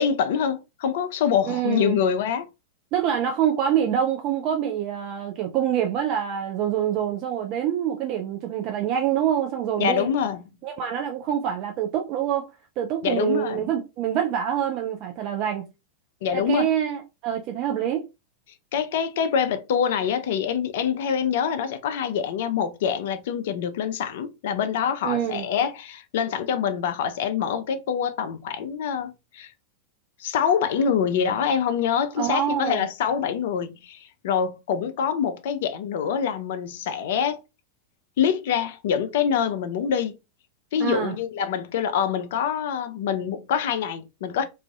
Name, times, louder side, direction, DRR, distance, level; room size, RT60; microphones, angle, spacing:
voice 1, 0.0-2.5 9.8-10.4 13.0-13.7 16.2-16.7 18.7-29.5 30.2-37.4 38.2-40.1 40.7-44.4, left 7 dB, 55° left, 0.3 m, -25 dB
voice 2, 1.4-2.0 2.9-10.1 10.6-12.5 12.8-15.7 16.3-18.1 25.0-25.5 32.2-32.9 40.8-41.2, right 9 dB, 40° right, 0.3 m, -26 dB
2.4 x 2.3 x 2.4 m
figure-of-eight pair, 90°, 0 cm